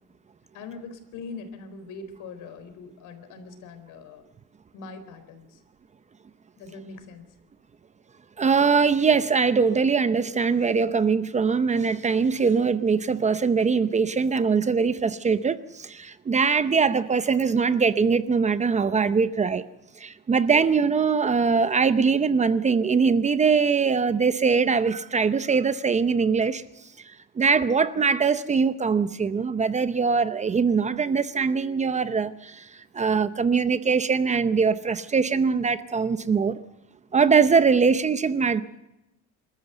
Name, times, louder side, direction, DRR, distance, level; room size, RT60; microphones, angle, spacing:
voice 1, 0.5-4.2 4.7-5.6 6.6-7.3, left 4 dB, 75° left, 10 dB, 4.0 m, -42 dB
voice 2, 8.4-19.6 20.0-26.6 27.4-32.7 32.9-36.6 37.1-38.6, right 5 dB, 20° right, 13 dB, 0.7 m, -22 dB
26.5 x 14.0 x 7.9 m, 0.94 s
cardioid pair, 150°, 31 cm